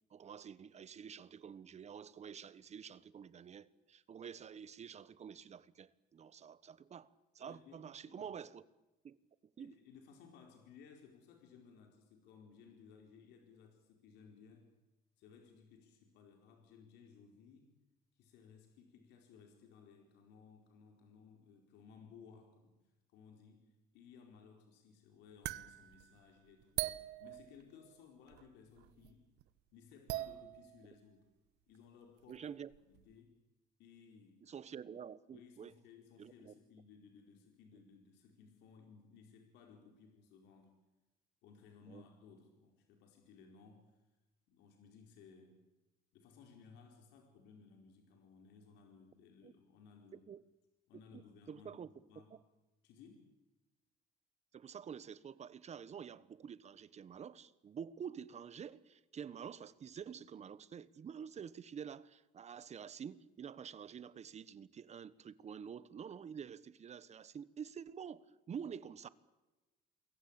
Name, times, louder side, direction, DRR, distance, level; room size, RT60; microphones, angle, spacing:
voice 1, 0.1-8.6 9.0-9.2 9.6-9.8 32.3-32.7 34.4-35.7 36.2-36.5 41.9-42.0 49.4-49.5 50.3-50.4 51.1-51.9 52.3-52.4 54.5-69.1, right 7 dB, 40° right, 1.3 m, -48 dB
voice 2, 7.4-8.3 9.6-14.7 15.2-17.8 18.1-22.8 23.1-29.3 29.7-31.2 31.7-32.5 32.9-33.4 33.8-34.4 35.3-40.7 41.4-44.0 44.5-45.6 46.1-50.3 50.9-52.3 52.8-53.3, left 6 dB, 90° left, 4.5 m, -60 dB
sound 1, 25.4-28.0 28.3-29.1 29.4-29.5 29.9-31.0 31.7-31.8 32.3-32.4 32.7-33.1, right 16 dB, 85° right, 1.2 m, -43 dB
28.0 x 22.0 x 8.9 m
cardioid pair, 110°, 17 cm